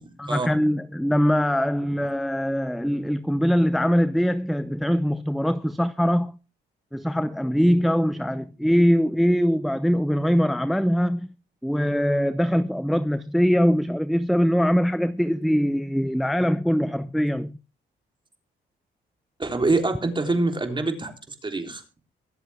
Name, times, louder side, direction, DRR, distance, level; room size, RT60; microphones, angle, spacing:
voice 1, 0.2-6.4 6.9-11.3 11.6-17.6, equal, ahead, 0.7 m, -22 dB
voice 2, 19.4-21.1 21.4-21.8, right 3 dB, 25° right, 3.8 m, -25 dB
24.0 x 8.1 x 3.6 m
cardioid pair, 90°, 20 cm